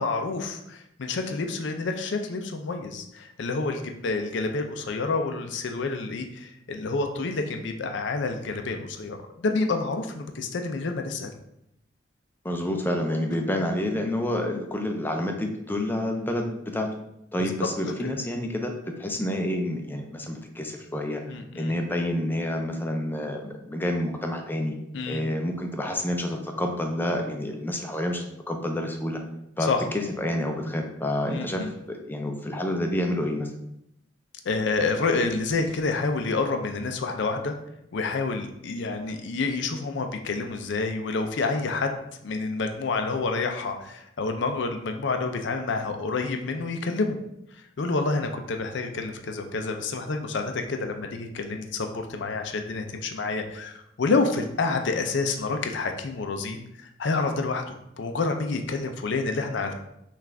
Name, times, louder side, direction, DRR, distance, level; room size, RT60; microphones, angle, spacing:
voice 1, 0.0-11.3 17.4-17.5 21.3-21.7 24.9-25.2 29.6-29.8 31.3-31.7 34.4-37.5 37.9-42.0 42.2-47.2 47.5-59.7, left 3 dB, 65° left, 6 dB, 0.5 m, -28 dB
voice 2, 12.4-16.9 17.3-21.2 21.6-24.8 25.1-29.2 29.6-33.5, left 1 dB, 10° left, 3 dB, 0.5 m, -28 dB
5.8 x 2.5 x 3.3 m, 0.81 s
head